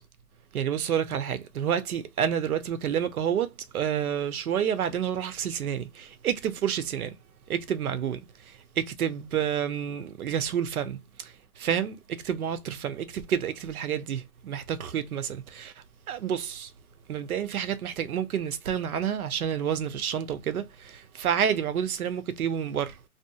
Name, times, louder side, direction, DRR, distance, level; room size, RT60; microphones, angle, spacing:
voice 1, 0.5-7.1 7.5-8.2 8.5-15.7 16.1-16.7 17.1-23.1, right 8 dB, 70° right, 0.7 m, -29 dB
2.8 x 2.4 x 2.2 m
hypercardioid pair, 165°, 45 cm